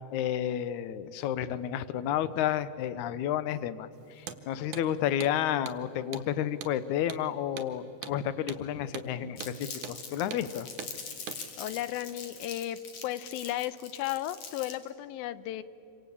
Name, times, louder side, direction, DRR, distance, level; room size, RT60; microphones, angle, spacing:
voice 1, 0.1-10.7, left 10 dB, 70° left, 14 dB, 2.0 m, -31 dB
Hammer, 4.2-4.4 4.7-4.9 5.2-5.3 5.7-5.8 6.1-6.3 6.6-6.8 7.1-7.2 7.6-7.7 8.0-8.2 8.5-8.6 8.9-9.1 9.4-9.6 9.8-10.0 10.3-10.5 10.8-10.9 11.3-11.4, right 9 dB, 65° right, 2.6 m, -41 dB
Crumpling crinkling, 9.4-14.9, left 5 dB, 55° left, 3.5 m, -43 dB
voice 2, 11.6-15.6, left 13 dB, 85° left, 15 dB, 2.6 m, -34 dB
27.5 x 25.0 x 8.5 m, 2.8 s
omnidirectional pair, 4.1 m